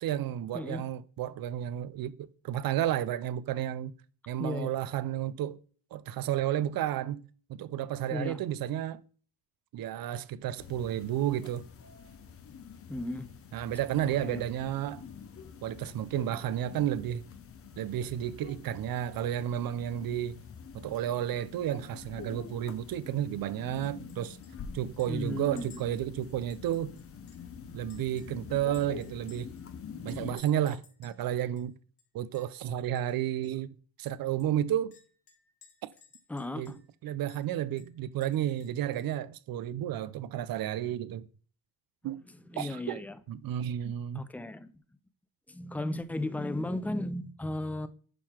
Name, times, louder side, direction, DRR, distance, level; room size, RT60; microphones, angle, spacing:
voice 1, 0.0-3.9 4.3-5.6 5.9-9.0 9.7-11.6 13.5-15.1 15.6-17.2 17.8-20.4 20.7-24.4 24.7-27.0 27.7-29.5 30.0-31.8 32.1-35.0 36.6-41.3 42.0-42.2 42.6-44.3, right 11 dB, 60° right, 0.6 m, -32 dB
voice 2, 0.5-0.8 4.4-4.8 8.1-8.4 12.9-13.3 14.0-14.4 25.1-25.7 36.3-36.8 42.5-43.5 44.1-44.7 45.5-47.9, left 1 dB, 5° left, 0.4 m, -35 dB
sound 1, 10.6-30.4, left 7 dB, 35° left, 0.8 m, -46 dB
Chink clink, 23.8-24.2 24.4-24.5 25.0-27.5 27.9-29.6 30.1-31.2 31.6-31.7 32.0-32.6 32.9-33.1 33.4-33.5 34.1-36.9 37.3-37.4 37.8-39.2, left 6 dB, 70° left, 2.1 m, -59 dB
11.0 x 3.8 x 4.4 m
cardioid pair, 145°, 40 cm